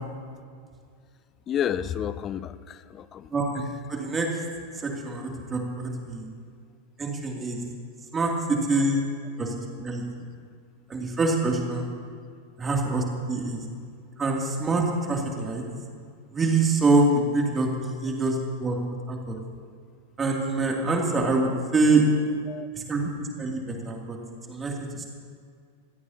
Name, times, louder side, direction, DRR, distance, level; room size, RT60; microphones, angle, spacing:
voice 1, 1.5-3.3 22.5-22.7, left 9 dB, 30° left, 16 dB, 0.6 m, -30 dB
voice 2, 3.9-4.3 4.8-6.3 7.0-7.6 8.1-9.0 9.4-9.5 9.8-10.0 10.9-11.9 12.6-13.6 14.2-15.6 16.3-18.8 19.1-19.3 20.2-22.0 22.7-24.2 24.5-25.1, right 3 dB, 20° right, 0 dB, 2.8 m, -25 dB
25.0 x 16.0 x 2.9 m, 2.1 s
figure-of-eight pair, 90°, 0 cm